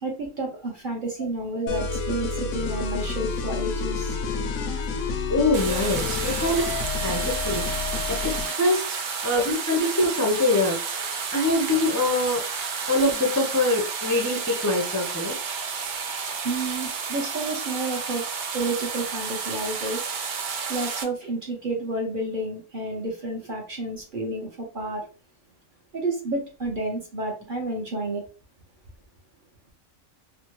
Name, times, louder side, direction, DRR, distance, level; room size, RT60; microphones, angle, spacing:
voice 1, 0.0-4.2 16.4-18.2 18.5-20.1 20.7-25.1 25.9-28.2, right 2 dB, 45° right, 0.8 m, -30 dB
sound 1, 1.7-8.6, left 4 dB, 85° left, 1.0 m, -29 dB
voice 2, 5.3-6.7 7.0-7.7 8.1-12.4 12.9-15.4, left 2 dB, 25° left, 0.4 m, -24 dB
sound 2, 5.5-21.0, right 5 dB, 70° right, 0.4 m, -31 dB
3.3 x 2.1 x 2.9 m
omnidirectional pair, 1.4 m